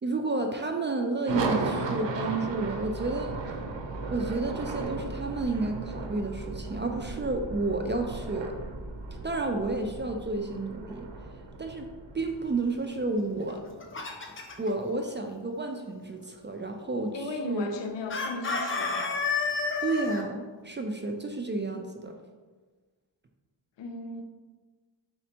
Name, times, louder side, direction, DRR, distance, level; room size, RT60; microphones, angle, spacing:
voice 1, 0.0-3.6 4.1-8.5 9.2-11.1 11.6-11.9 12.1-13.6 14.6-17.7 19.8-22.1, right 3 dB, 25° right, 4 dB, 0.3 m, -31 dB
sound 1, 1.3-13.4, right 3 dB, 75° right, 0.7 m, -36 dB
sound 2, 2.4-13.0, right 1 dB, 50° right, 1.0 m, -43 dB
Chicken rooster, 13.5-14.7 18.1-20.2, left 4 dB, 30° left, 0.6 m, -30 dB
voice 2, 17.1-19.2 23.8-24.2, left 3 dB, 70° left, 4 dB, 0.7 m, -36 dB
4.3 x 4.2 x 2.8 m, 1.3 s
wide cardioid pair, 100°, 45 cm